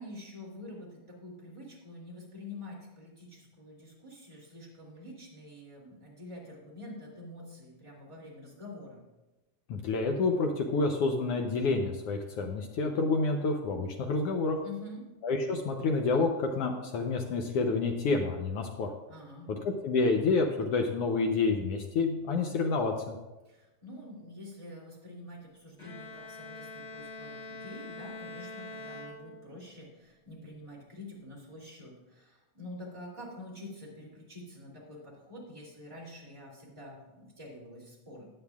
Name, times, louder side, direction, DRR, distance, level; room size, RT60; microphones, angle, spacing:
voice 1, 0.0-9.0 14.6-15.0 19.1-19.5 23.4-38.3, left 1 dB, 10° right, -4 dB, 2.5 m, -47 dB
voice 2, 9.7-14.6 15.2-18.9 19.8-23.1, left 3 dB, 75° left, 3 dB, 1.3 m, -28 dB
Bowed string instrument, 25.8-29.8, left 2 dB, 30° left, 1.6 m, -44 dB
15.5 x 9.7 x 2.4 m, 1.1 s
omnidirectional pair, 3.5 m